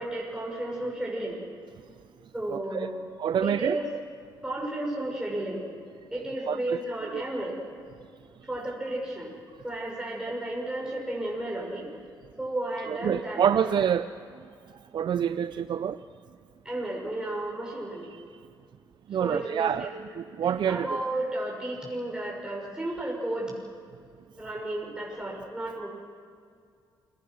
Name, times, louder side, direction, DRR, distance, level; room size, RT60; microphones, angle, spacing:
voice 1, 0.0-1.4 2.3-3.0 3.4-3.9 4.4-5.7 6.1-7.6 8.4-9.3 9.6-11.9 12.4-13.4 13.7-13.8 16.6-18.2 19.2-19.9 20.7-23.5 24.4-25.9, right 1 dB, 10° right, -3 dB, 6.4 m, -33 dB
voice 2, 2.5-2.9 3.2-3.8 6.5-6.8 7.1-7.2 12.9-14.1 14.9-16.0 19.1-21.0, right 8 dB, 60° right, 12 dB, 0.5 m, -27 dB
28.5 x 18.5 x 6.3 m, 2.2 s
supercardioid pair, 65°, 9 cm